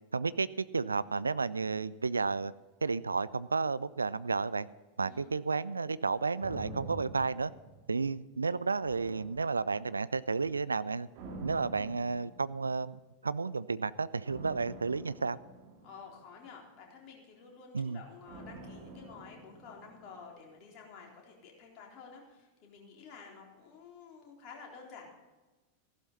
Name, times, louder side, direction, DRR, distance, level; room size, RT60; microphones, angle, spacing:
voice 1, 0.1-2.5 2.8-4.7 5.0-7.5 7.9-11.1 11.4-15.4 17.7-18.0, right 4 dB, 75° right, 18 dB, 0.4 m, -32 dB
voice 2, 5.0-5.3 15.8-25.1, left 5 dB, 40° left, -1 dB, 3.8 m, -51 dB
sound 1, 6.4-8.3 8.8-10.1 11.1-12.9 14.3-16.7 18.3-20.4 20.7-20.8, right 2 dB, 45° right, 2.4 m, -48 dB
15.0 x 12.0 x 4.0 m, 1.2 s
figure-of-eight pair, 90°, 0 cm